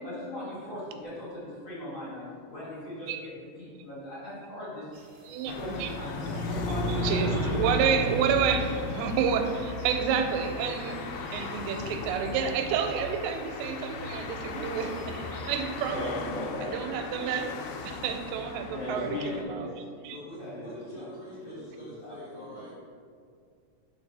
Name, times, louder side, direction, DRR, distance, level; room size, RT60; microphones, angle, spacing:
voice 1, 0.0-3.3 3.6-5.0 5.5-8.1 15.9-16.7 17.2-17.4 17.9-18.0 18.7-21.1 21.5-22.6, left 1 dB, 50° left, -11 dB, 2.0 m, -39 dB
sound 1, 4.9-15.9, right 2 dB, 70° right, 1.3 m, -52 dB
voice 2, 5.3-5.9 7.0-8.7 9.0-11.0 11.3-16.1 16.6-17.5 17.8-19.2 19.5-19.7 20.0-20.2, right 7 dB, 85° right, 6 dB, 2.7 m, -29 dB
sound 2, 5.5-19.4, left 2 dB, 90° left, 2.8 m, -35 dB
voice 3, 7.1-9.1 9.4-9.6 20.0-22.7, left 1 dB, 75° left, -9 dB, 1.5 m, -44 dB
5.8 x 5.0 x 4.0 m, 2.2 s
omnidirectional pair, 4.8 m